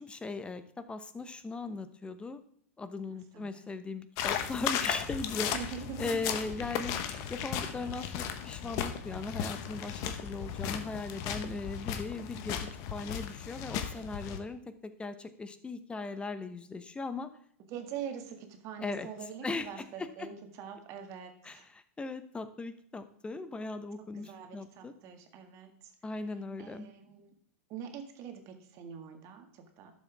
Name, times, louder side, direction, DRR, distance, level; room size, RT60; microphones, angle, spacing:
voice 1, 0.0-2.4 2.8-5.6 6.0-6.9 7.3-17.3 18.8-19.1 19.4-20.3 21.4-24.9 26.0-26.9, left 3 dB, 15° left, 11 dB, 0.9 m, -38 dB
voice 2, 3.1-3.7 5.5-6.2 17.7-21.7 24.1-25.7 26.6-27.3 27.7-29.9, right 8 dB, 45° right, 5 dB, 1.9 m, -44 dB
sound 1, 4.2-14.4, left 8 dB, 50° left, 1.2 m, -36 dB
11.5 x 7.3 x 3.5 m, 0.64 s
hypercardioid pair, 100°, 8 cm